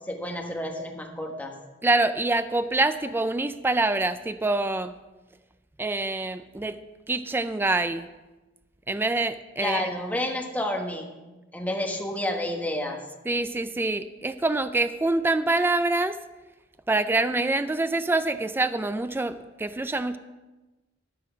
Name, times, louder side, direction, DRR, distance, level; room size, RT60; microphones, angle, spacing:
voice 1, 0.1-1.5 9.6-11.1 11.5-13.0, left 1 dB, 10° left, 1 dB, 1.4 m, -30 dB
voice 2, 1.8-5.0 5.8-6.8 7.1-8.1 8.9-9.9 13.3-16.2 16.9-20.2, right 2 dB, 10° right, 11 dB, 0.3 m, -25 dB
12.5 x 6.1 x 6.0 m, 1.1 s
head